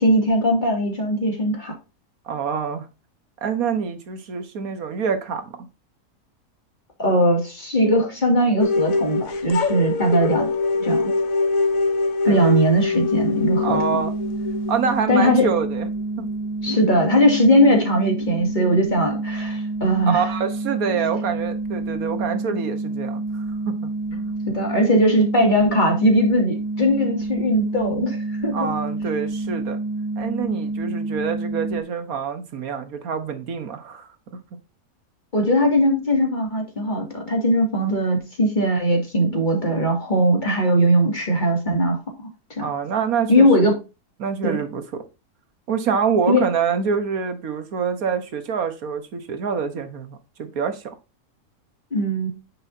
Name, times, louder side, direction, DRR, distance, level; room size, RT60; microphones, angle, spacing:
voice 1, 0.0-1.7 7.0-10.5 10.8-11.0 12.2-14.0 15.1-15.5 16.6-20.2 24.5-28.5 35.3-42.0 42.5-42.7 43.3-43.8 44.4-44.6 46.3-46.5 51.9-52.3, equal, 30° left, 2.6 m, -19 dB
voice 2, 2.2-2.9 3.4-5.6 12.2-12.7 13.6-14.1 14.7-15.9 16.2-16.3 20.1-24.4 28.5-29.8 30.2-34.1 42.6-43.5 44.2-45.0 45.7-50.9, right 6 dB, 65° right, 1.6 m, -26 dB
sound 1, 8.6-15.5, left 4 dB, 60° left, 1.4 m, -23 dB
sound 2, 13.1-31.8, right 2 dB, 80° left, 2.3 m, -28 dB
9.6 x 6.3 x 2.7 m
omnidirectional pair, 1.6 m